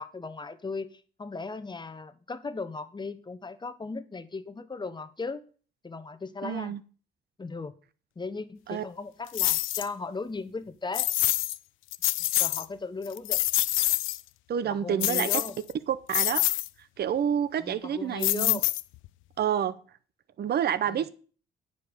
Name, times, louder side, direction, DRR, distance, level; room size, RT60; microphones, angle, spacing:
voice 1, 0.0-5.4 5.8-6.8 7.4-7.7 8.2-11.1 12.4-13.4 14.6-15.6 17.6-18.6 20.9-21.1, left 4 dB, 20° left, 0.9 m, -37 dB
voice 2, 6.4-6.8 8.7-8.8 14.5-15.4 15.9-16.4 17.0-18.6 19.4-19.8 20.4-21.1, right 9 dB, 55° right, 0.7 m, -28 dB
sound 1, 9.3-9.9 10.9-11.6 11.9-12.6 13.0-14.2 15.0-15.7 16.1-16.7 18.2-19.1, left 17 dB, 85° left, 0.4 m, -26 dB
9.3 x 5.4 x 6.5 m
cardioid pair, 90°, 20 cm